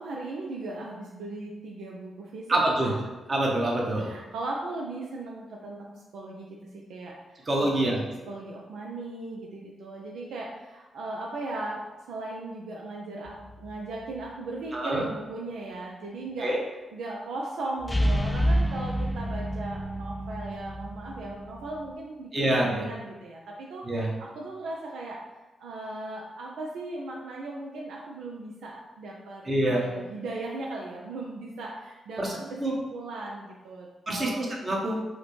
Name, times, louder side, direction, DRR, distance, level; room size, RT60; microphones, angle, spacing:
voice 1, 0.0-2.9 4.0-8.0 8.3-11.8 12.1-16.5 16.9-25.2 25.6-34.5, right 2 dB, 80° right, -2 dB, 0.4 m, -38 dB
voice 2, 2.5-2.9 3.3-4.1 7.5-8.0 14.7-15.0 16.4-16.6 22.3-22.8 23.8-24.1 29.4-29.9 32.2-32.3 32.6-32.7 34.1-35.0, right 1 dB, 40° right, -2 dB, 1.1 m, -26 dB
sound 1, 13.3-13.8 17.8-21.9, equal, 15° left, 0.4 m, -29 dB
4.9 x 2.1 x 3.1 m, 1.2 s
supercardioid pair, 50°, 0 cm